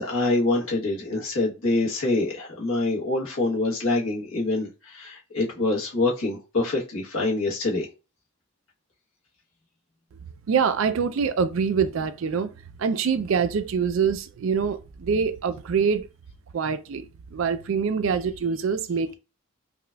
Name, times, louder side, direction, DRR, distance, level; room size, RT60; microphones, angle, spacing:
voice 1, 0.0-7.9, left 2 dB, 75° left, 1.2 m, -25 dB
voice 2, 10.5-12.5 12.8-16.1 16.5-19.1, right 6 dB, 70° right, 0.4 m, -25 dB
4.9 x 2.4 x 2.2 m
head